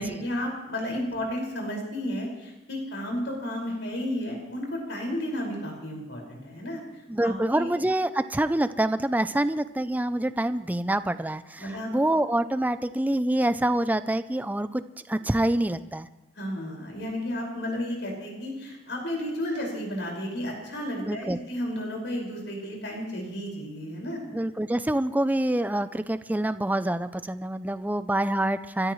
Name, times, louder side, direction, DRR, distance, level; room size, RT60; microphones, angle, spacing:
voice 1, 0.0-6.8 7.2-7.7 11.6-11.9 16.4-24.2, left 1 dB, 90° left, -1 dB, 5.4 m, -32 dB
voice 2, 7.1-14.8 15.1-16.1 21.1-21.4 24.3-28.9, right 1 dB, 10° right, 12 dB, 0.5 m, -26 dB
29.5 x 13.5 x 3.2 m, 1.0 s
head